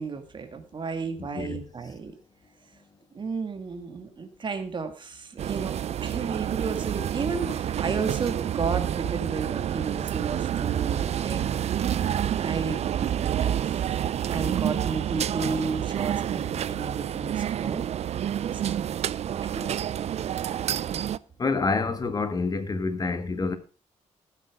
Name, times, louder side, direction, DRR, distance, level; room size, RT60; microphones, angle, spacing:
voice 1, 0.0-2.1 3.1-5.8 6.0-11.7 12.3-13.9 14.3-17.8 18.4-18.9 19.4-19.9, right 4 dB, 40° right, 2.2 m, -33 dB
voice 2, 1.2-1.6 21.4-23.6, left 4 dB, 30° left, 1.6 m, -27 dB
sound 1, 5.4-21.2, right 10 dB, 60° right, 0.5 m, -28 dB
15.0 x 8.4 x 5.0 m
cardioid pair, 130°, 13 cm